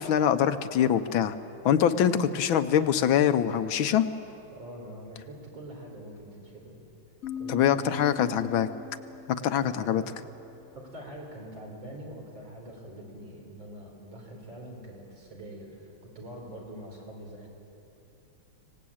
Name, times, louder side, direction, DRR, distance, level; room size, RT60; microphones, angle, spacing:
voice 1, 0.0-1.3 1.6-4.1 7.5-8.7 9.3-10.0, left 9 dB, 75° left, 10 dB, 1.6 m, -24 dB
voice 2, 4.5-6.8 7.4-8.4 9.5-10.3 10.7-17.5, right 1 dB, 65° right, -1 dB, 5.0 m, -44 dB
sound 1, 7.2-10.8, left 6 dB, 40° left, 2.5 m, -42 dB
25.0 x 18.5 x 8.7 m, 2.9 s
omnidirectional pair, 2.2 m